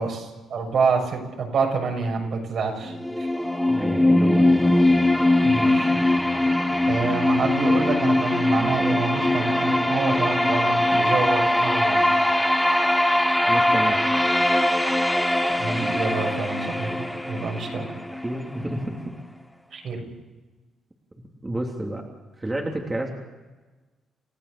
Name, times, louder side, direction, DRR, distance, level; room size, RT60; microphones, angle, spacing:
voice 1, 0.0-2.9 5.4-5.9 6.9-12.0 15.6-17.9 19.7-20.0, right 4 dB, 60° right, 2 dB, 6.7 m, -27 dB
sound 1, 2.9-18.8, left 1 dB, 5° left, 1.4 m, -21 dB
voice 2, 3.7-4.5 13.5-14.2 18.1-19.1 21.4-22.1 22.4-23.1, right 1 dB, 15° right, 0 dB, 3.1 m, -30 dB
30.0 x 15.0 x 6.9 m, 1.2 s
cardioid pair, 90°, 0 cm